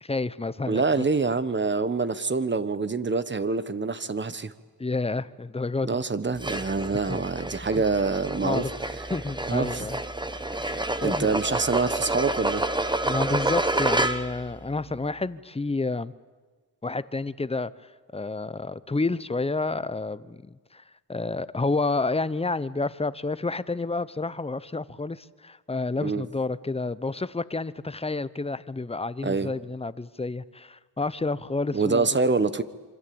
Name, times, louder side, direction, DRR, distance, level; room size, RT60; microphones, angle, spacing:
voice 1, 0.0-1.1 4.8-5.9 7.1-7.2 8.4-8.7 9.1-10.0 11.0-11.3 13.0-16.1 16.8-17.7 18.1-20.8 21.1-32.1, left 3 dB, 15° left, 16 dB, 0.9 m, -29 dB
voice 2, 0.7-4.5 5.8-8.6 9.5-9.9 10.6-12.6 26.0-26.2 29.2-29.5 31.7-32.6, right 4 dB, 30° right, 14 dB, 1.3 m, -26 dB
sound 1, 6.4-14.5, right 2 dB, 10° right, 1.3 m, -29 dB
27.0 x 25.0 x 8.8 m, 1.4 s
wide cardioid pair, 100°, 36 cm